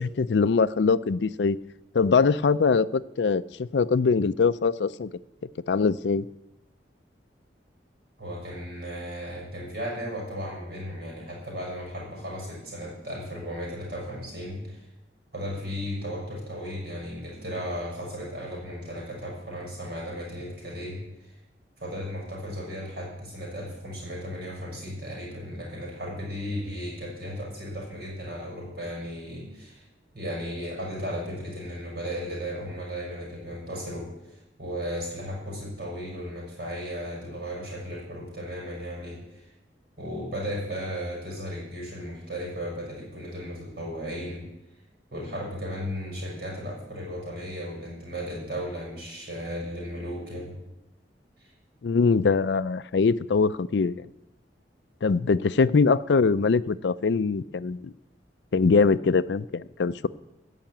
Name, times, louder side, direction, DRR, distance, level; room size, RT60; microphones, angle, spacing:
voice 1, 0.0-1.6 1.9-5.1 5.7-6.3 51.8-54.0 55.0-57.9 58.5-60.1, left 4 dB, 80° left, 16 dB, 0.5 m, -22 dB
voice 2, 8.2-14.8 15.3-21.3 21.8-29.8 30.1-39.5 40.0-44.5 45.1-50.6 51.4-51.5, equal, 60° right, -2 dB, 6.2 m, -35 dB
15.0 x 5.9 x 8.7 m, 0.91 s
head